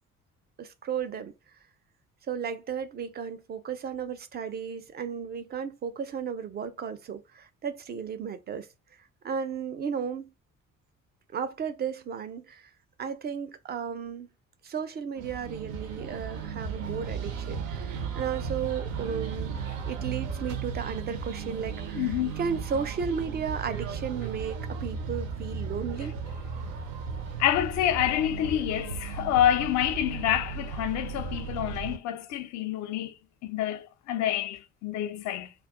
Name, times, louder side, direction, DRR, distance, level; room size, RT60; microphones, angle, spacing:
voice 1, 0.6-1.3 2.3-8.7 9.2-10.3 11.3-12.7 13.0-14.3 14.6-19.6 19.9-26.2, right 6 dB, 25° right, 0.4 m, -34 dB
sound 1, 15.2-32.0, right 6 dB, 70° right, 0.6 m, -35 dB
voice 2, 21.9-22.3 27.4-33.1 33.4-35.5, left 11 dB, 45° left, 0.5 m, -27 dB
2.3 x 2.2 x 3.5 m
figure-of-eight pair, 45°, 41 cm